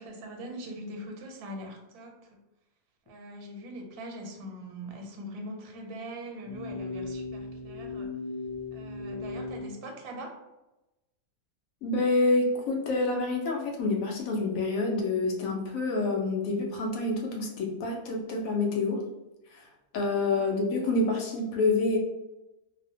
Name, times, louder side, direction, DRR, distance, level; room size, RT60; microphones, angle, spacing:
voice 1, 0.0-2.4 3.1-8.1 8.7-10.4 20.4-20.5, right 1 dB, 90° right, 3 dB, 1.1 m, -42 dB
sound 1, 6.4-9.7, left 3 dB, 60° right, 0.6 m, -37 dB
voice 2, 11.8-19.0 19.5-19.7 19.9-22.0, left 3 dB, 75° left, 1 dB, 1.0 m, -27 dB
2.7 x 2.0 x 2.6 m, 0.98 s
omnidirectional pair, 1.5 m